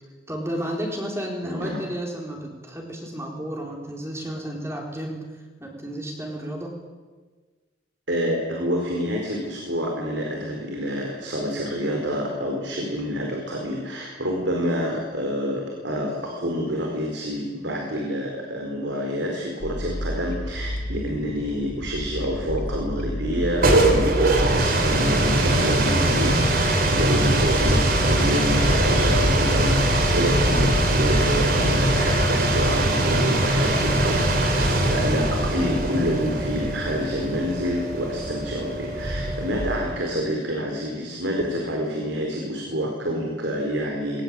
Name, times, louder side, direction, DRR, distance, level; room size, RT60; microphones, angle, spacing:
voice 1, 0.3-5.2 5.6-6.8 27.0-27.3, equal, 15° right, 0 dB, 4.6 m, -32 dB
voice 2, 1.4-1.8 8.1-44.2, equal, 80° right, 1 dB, 4.6 m, -28 dB
sound 1, 19.6-32.7, equal, 50° left, 2.3 m, -30 dB
sound 2, 23.3-40.0, right 1 dB, 50° right, 3.4 m, -22 dB
22.0 x 20.0 x 9.0 m, 1.4 s
head